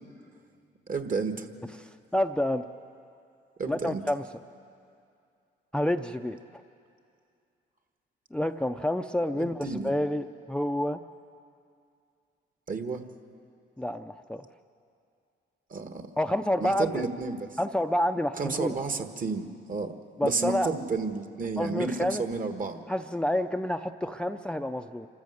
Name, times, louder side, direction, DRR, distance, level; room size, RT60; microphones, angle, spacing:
voice 1, 0.9-1.5 3.6-4.0 9.3-9.9 12.7-13.1 15.7-16.1 16.6-17.5 18.4-20.0 20.2-22.8, right 4 dB, 45° right, 7 dB, 1.5 m, -31 dB
voice 2, 1.8-2.6 3.7-4.2 5.7-6.6 8.3-11.0 13.8-14.5 16.2-17.0 17.6-18.8 20.2-20.7 21.6-22.2 22.9-25.1, left 1 dB, 5° left, 8 dB, 0.5 m, -29 dB
26.0 x 14.0 x 7.9 m, 2.4 s
cardioid pair, 90°, 20 cm